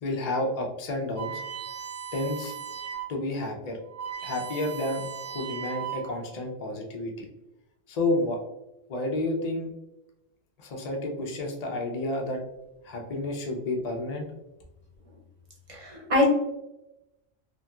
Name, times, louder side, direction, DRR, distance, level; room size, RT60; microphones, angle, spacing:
voice 1, 0.0-1.4 2.1-2.5 3.1-3.8 4.2-7.3 7.9-8.4 8.9-9.7 10.6-12.4 12.8-14.3, left 2 dB, 50° left, 1 dB, 0.4 m, -30 dB
sound 1, 1.2-3.2 3.5-3.6 3.8-6.3, right 8 dB, 85° right, 1.1 m, -37 dB
voice 2, 15.7-16.3, left 1 dB, 35° right, -3 dB, 0.7 m, -23 dB
2.9 x 2.7 x 2.2 m, 0.92 s
omnidirectional pair, 1.3 m